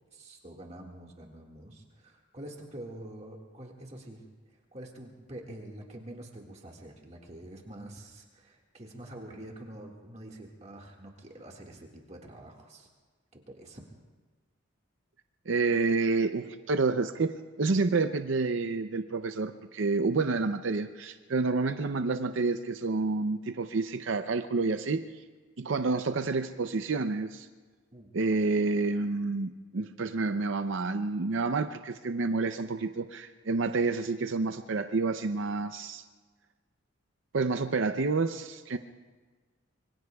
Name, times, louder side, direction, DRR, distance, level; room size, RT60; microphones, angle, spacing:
voice 1, 0.1-4.2 4.7-12.9 13.5-13.8 27.9-28.1, right 1 dB, 30° right, 0 dB, 1.8 m, -46 dB
voice 2, 15.5-25.0 25.6-27.5 28.1-36.0 37.3-38.8, right 3 dB, 70° right, 8 dB, 0.6 m, -29 dB
25.5 x 24.0 x 2.3 m, 1.4 s
head